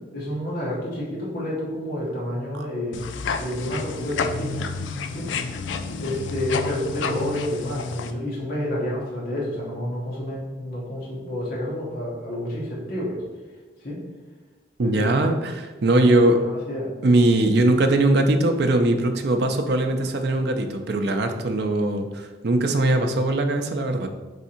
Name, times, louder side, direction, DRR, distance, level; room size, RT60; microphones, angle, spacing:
voice 1, 0.1-3.0 3.4-4.6 5.1-5.3 6.0-13.2 13.8-14.0 14.8-15.3 15.8-16.9 20.0-20.1, left 1 dB, 50° left, -5 dB, 1.1 m, -29 dB
sound 1, 2.9-8.1, left 5 dB, 85° left, 0.4 m, -30 dB
voice 2, 14.8-15.5 15.8-16.4 17.0-24.1, right 2 dB, 60° right, 5 dB, 0.5 m, -20 dB
3.6 x 3.4 x 4.3 m, 1.2 s
head